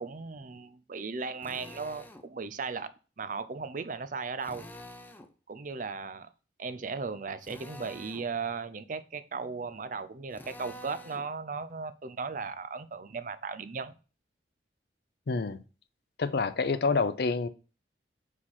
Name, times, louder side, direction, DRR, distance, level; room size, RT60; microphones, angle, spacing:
voice 1, 0.0-2.9 3.2-4.7 5.5-6.3 6.6-13.9, right 4 dB, 45° right, 0.5 m, -36 dB
Drill, 1.4-2.3 4.4-5.3 7.4-8.3 10.3-11.3, left 1 dB, 10° left, 0.5 m, -47 dB
voice 2, 15.3-15.6 16.2-17.5, left 4 dB, 60° left, 0.5 m, -27 dB
5.5 x 4.9 x 4.2 m
head